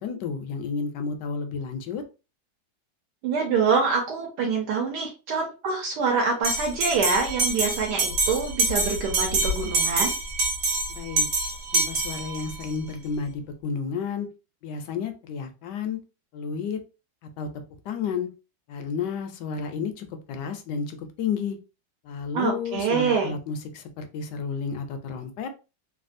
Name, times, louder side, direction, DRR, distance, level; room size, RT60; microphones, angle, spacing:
voice 1, 0.0-2.0 10.9-11.3 11.7-14.3 14.6-16.0 16.3-16.8 17.4-17.5 17.8-18.3 18.7-21.6 22.0-25.5, left 5 dB, 75° left, 1.2 m, -31 dB
voice 2, 3.2-10.2 22.3-23.3, right 5 dB, 75° right, 1.3 m, -25 dB
Bell, 6.4-12.7, right 2 dB, 55° right, 1.4 m, -26 dB
3.3 x 2.3 x 2.5 m
omnidirectional pair, 1.9 m